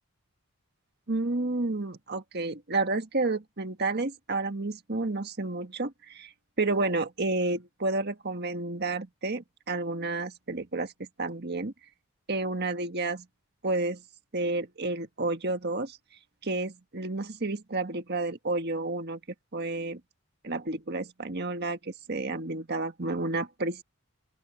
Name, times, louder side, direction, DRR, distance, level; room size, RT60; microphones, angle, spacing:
voice 1, 1.1-6.3 6.6-11.7 12.3-13.3 13.6-14.0 14.3-16.0 16.4-19.2 19.5-20.0 20.4-23.8, right 2 dB, 45° right, 1.6 m, -31 dB
open air
head